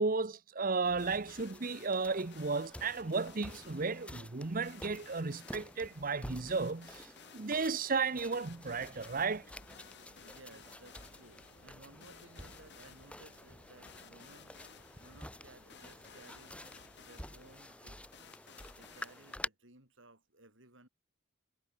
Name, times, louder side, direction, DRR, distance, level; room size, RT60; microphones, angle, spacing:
voice 1, 0.0-9.5, right 4 dB, 40° right, 0.9 m, -34 dB
sound 1, 0.8-19.5, left 1 dB, 5° left, 4.2 m, -50 dB
sound 2, 1.0-19.4, left 7 dB, 55° left, 7.8 m, -58 dB
sound 3, 8.4-17.4, left 1 dB, 70° left, 7.7 m, -63 dB
voice 2, 10.2-14.6 14.9-16.6 17.0-18.2 18.7-20.9, right 2 dB, 60° right, 7.9 m, -59 dB
head